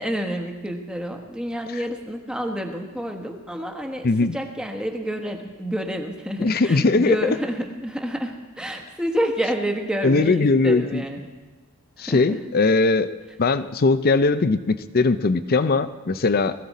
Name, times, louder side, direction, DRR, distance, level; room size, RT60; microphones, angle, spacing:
voice 1, 0.0-11.3 12.0-12.4, equal, 5° right, 3 dB, 1.2 m, -29 dB
voice 2, 4.0-4.3 6.4-7.1 10.0-11.0 12.0-13.1 13.4-16.5, left 3 dB, 45° left, 13 dB, 0.5 m, -20 dB
20.5 x 14.5 x 4.2 m, 1.3 s
head